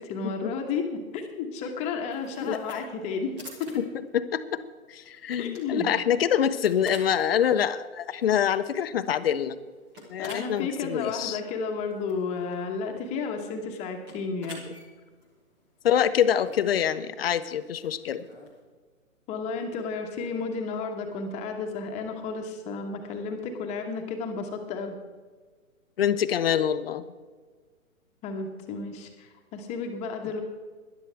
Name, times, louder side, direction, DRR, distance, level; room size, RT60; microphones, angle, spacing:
voice 1, 0.0-3.3 3.6-3.8 5.4-5.9 10.2-14.6 19.3-24.9 28.2-30.4, left 4 dB, 15° left, 4 dB, 1.2 m, -32 dB
sound 1, 2.1-18.6, left 1 dB, 5° right, 0.5 m, -50 dB
voice 2, 2.4-2.8 3.8-3.9 4.1-4.6 4.9-9.6 10.1-11.4 15.8-18.2 26.0-27.0, left 9 dB, 45° left, 12 dB, 0.8 m, -25 dB
18.0 x 11.5 x 3.4 m, 1.4 s
hypercardioid pair, 145°, 41 cm